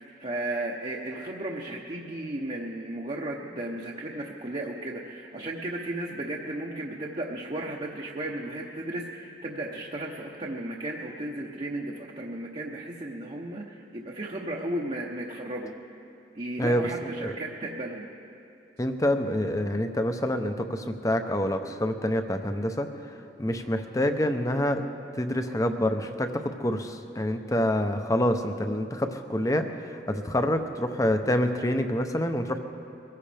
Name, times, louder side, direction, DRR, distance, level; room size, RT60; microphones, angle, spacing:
voice 1, 0.2-15.7 16.3-18.0, right 1 dB, 35° right, -2 dB, 0.8 m, -34 dB
voice 2, 16.6-17.3 18.8-22.9 23.4-24.8 25.1-32.6, left 1 dB, 20° left, 7 dB, 0.7 m, -27 dB
22.5 x 15.5 x 3.4 m, 2.7 s
head